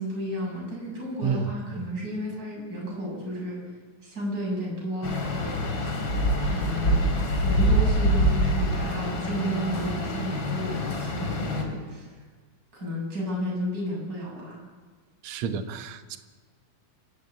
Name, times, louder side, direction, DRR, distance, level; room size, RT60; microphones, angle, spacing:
voice 1, 0.0-3.6 4.0-6.0 6.5-7.1 7.4-12.2 12.7-14.6, equal, 25° right, -3 dB, 7.8 m, -32 dB
voice 2, 1.2-1.8 15.2-16.2, right 6 dB, 65° right, 8 dB, 2.3 m, -30 dB
sound 1, 5.0-11.6, equal, 40° left, 3.8 m, -25 dB
28.0 x 15.5 x 8.5 m, 1.4 s
omnidirectional pair, 3.7 m